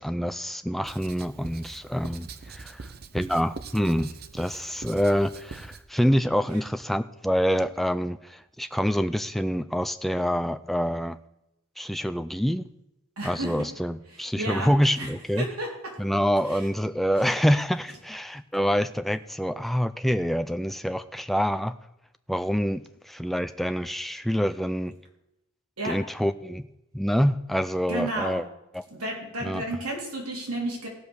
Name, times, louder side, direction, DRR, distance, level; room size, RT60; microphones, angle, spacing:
voice 1, 0.0-2.8 3.1-11.2 11.8-12.7 13.2-15.5 16.0-21.7 22.3-24.9 25.8-26.7 26.9-28.4 28.7-28.8 29.4-29.6, equal, ahead, 11 dB, 0.3 m, -26 dB
Writing, 0.8-5.8, right 4 dB, 45° right, 0.6 m, -43 dB
voice 2, 13.2-13.7 14.1-14.7 15.0-15.1 15.4-15.9 16.5-16.6 17.2-17.3 25.8-26.0 27.9-28.4 28.9-30.9, right 1 dB, 85° right, -2 dB, 3.6 m, -32 dB
16.0 x 5.3 x 6.3 m, 0.87 s
head